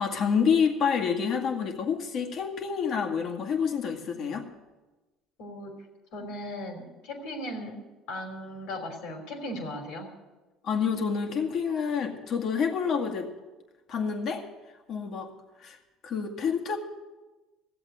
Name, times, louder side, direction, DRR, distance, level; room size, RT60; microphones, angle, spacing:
voice 1, 0.0-4.5 10.6-13.3 13.9-14.5 14.9-15.3 15.6-15.8 16.0-16.8, left 6 dB, 55° left, 3 dB, 2.1 m, -28 dB
voice 2, 5.4-5.7 6.1-7.8 8.1-10.1, left 1 dB, 70° left, 4 dB, 3.2 m, -37 dB
15.0 x 8.0 x 9.1 m, 1.2 s
hypercardioid pair, 70°, 0 cm